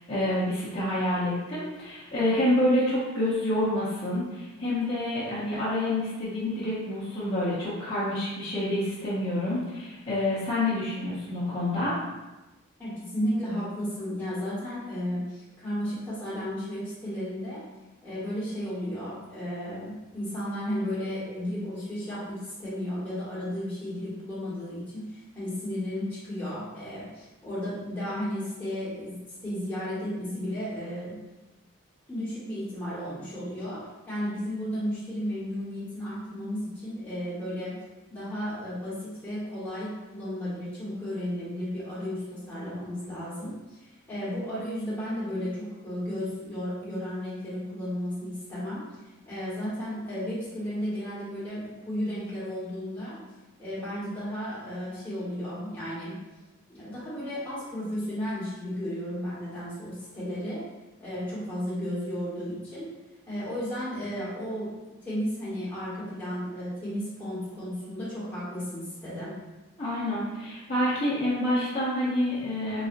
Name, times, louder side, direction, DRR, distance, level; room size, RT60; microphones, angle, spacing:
voice 1, 0.0-12.0 69.8-72.9, left 1 dB, 30° left, -12 dB, 0.7 m, -28 dB
voice 2, 12.8-17.6 18.0-31.2 32.1-33.8 34.1-37.7 38.1-48.8 49.3-53.2 53.6-56.2 56.7-60.6 61.0-62.9 63.3-69.3, equal, 10° left, -11 dB, 1.3 m, -34 dB
4.0 x 2.6 x 2.5 m, 1.1 s
head